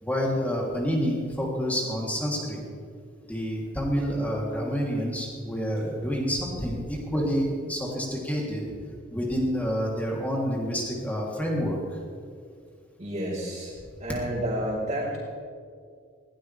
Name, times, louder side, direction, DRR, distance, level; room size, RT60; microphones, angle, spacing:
voice 1, 0.0-2.6 3.3-8.6 9.1-11.8, equal, 10° left, -3 dB, 3.2 m, -28 dB
voice 2, 13.0-13.7 14.0-15.2, right 1 dB, 35° right, -10 dB, 4.7 m, -30 dB
21.0 x 17.5 x 3.5 m, 2.1 s
head